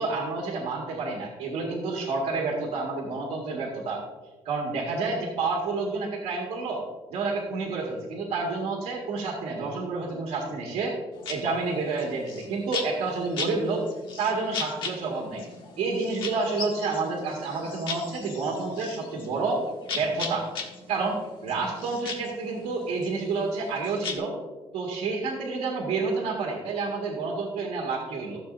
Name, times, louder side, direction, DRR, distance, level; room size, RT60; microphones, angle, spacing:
voice 1, 0.0-4.0 4.4-6.8 7.1-10.9 11.3-13.8 14.2-15.4 15.8-19.6 19.9-20.5 20.9-24.3 24.7-28.4, right 3 dB, 85° right, -1 dB, 1.8 m, -29 dB
sound 1, 11.1-24.2, left 4 dB, 50° left, 1.4 m, -38 dB
14.0 x 7.4 x 2.6 m, 1.2 s
cardioid pair, 170°, 11 cm